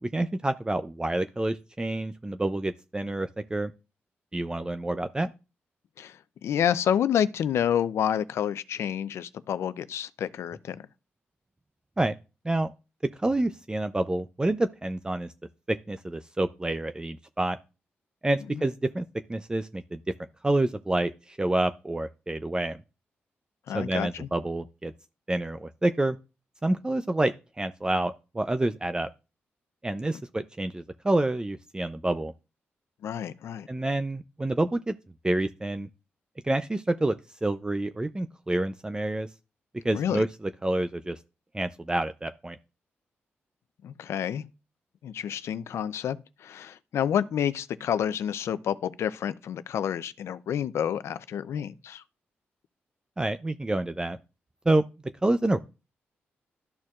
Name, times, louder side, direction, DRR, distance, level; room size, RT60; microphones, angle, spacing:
voice 1, 0.0-3.7 4.3-5.3 12.0-12.1 12.4-12.7 13.2-15.3 15.7-17.6 18.2-19.0 19.3-20.0 20.4-22.8 23.7-24.9 25.3-26.2 26.6-29.1 29.8-32.3 33.7-34.9 35.2-35.9 36.4-39.3 39.8-41.2 41.5-42.6 53.2-54.2 54.7-54.8 55.2-55.7, right 2 dB, 20° right, 0.5 m, -28 dB
voice 2, 6.0-10.8 18.5-18.6 23.7-24.3 33.0-33.7 39.9-40.2 43.8-44.4 45.0-52.0, left 9 dB, 80° left, 0.5 m, -29 dB
13.0 x 4.4 x 2.4 m
cardioid pair, 55°, 5 cm